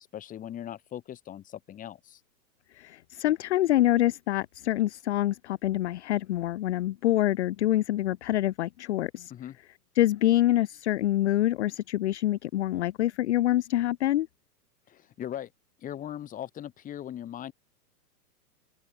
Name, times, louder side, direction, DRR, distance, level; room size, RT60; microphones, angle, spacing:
voice 1, 0.1-2.2 9.3-9.6 14.9-15.5 15.8-17.5, left 11 dB, 15° left, 3.4 m, -39 dB
voice 2, 2.7-9.3 10.0-14.3, left 14 dB, 45° left, 0.7 m, -26 dB
hypercardioid pair, 160°, 50 cm